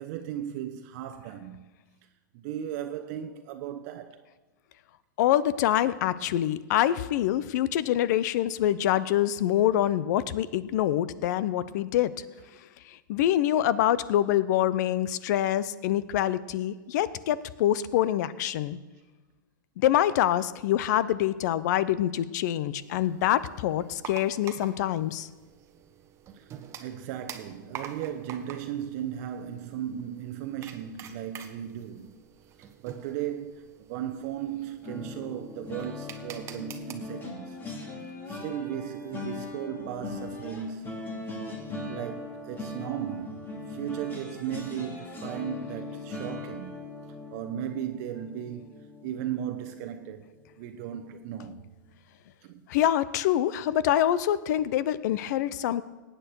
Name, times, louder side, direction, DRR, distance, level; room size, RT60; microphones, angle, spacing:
voice 1, 0.0-1.6 2.3-4.2 26.3-26.5 26.8-32.1 32.8-37.6 38.3-41.1 41.9-46.8 47.3-48.7 49.0-51.6 52.4-52.6, right 10 dB, 50° right, 0.8 m, -36 dB
voice 2, 5.2-12.2 12.8-18.8 19.8-25.3 52.7-55.8, left 12 dB, 60° left, 0.7 m, -25 dB
sound 1, 22.8-36.9, right 8 dB, 25° right, 1.1 m, -47 dB
sound 2, 34.8-50.0 50.4-50.6 50.9-51.1, left 3 dB, 20° left, 2.5 m, -40 dB
18.5 x 9.1 x 4.7 m
hypercardioid pair, 130°, 11 cm